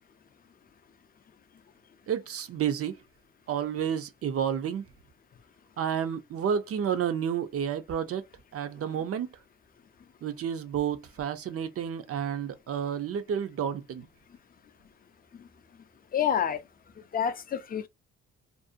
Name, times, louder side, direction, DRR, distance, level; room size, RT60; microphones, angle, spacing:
voice 1, 2.1-3.0 3.5-4.9 5.8-8.3 8.5-9.4 10.2-14.1, right 8 dB, 50° right, 0.5 m, -30 dB
voice 2, 16.1-16.6 17.1-17.9, left 8 dB, 30° left, 0.4 m, -28 dB
2.5 x 2.1 x 2.5 m
cardioid pair, 90°, 30 cm